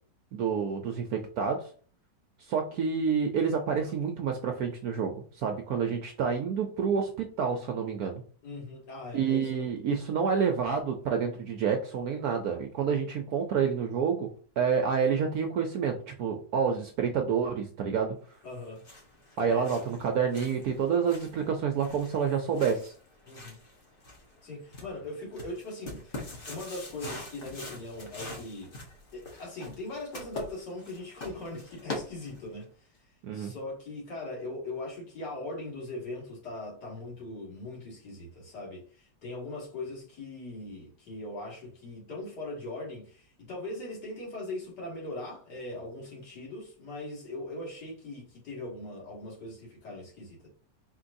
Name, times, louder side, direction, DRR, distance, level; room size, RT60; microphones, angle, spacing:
voice 1, 0.3-1.6 2.5-8.2 9.1-14.3 14.6-18.2 19.4-22.9 33.2-33.5, right 6 dB, 70° right, 0.9 m, -28 dB
voice 2, 8.4-9.7 18.4-18.9 19.5-20.0 23.3-23.6 24.4-26.2 26.5-28.7 29.1-32.7 33.3-50.5, left 2 dB, 65° left, 2.2 m, -40 dB
sound 1, 18.5-32.6, left 2 dB, 35° left, 1.0 m, -44 dB
4.5 x 3.7 x 2.6 m
omnidirectional pair, 2.0 m